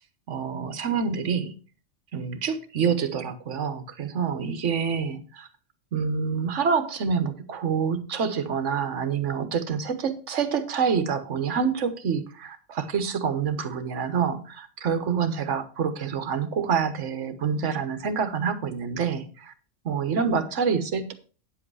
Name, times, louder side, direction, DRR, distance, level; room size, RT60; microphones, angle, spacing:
voice 1, 0.3-1.6 2.1-5.5 5.9-19.5 19.8-21.1, right 6 dB, 60° right, 11 dB, 1.4 m, -27 dB
9.5 x 7.7 x 4.7 m, 0.37 s
omnidirectional pair, 1.5 m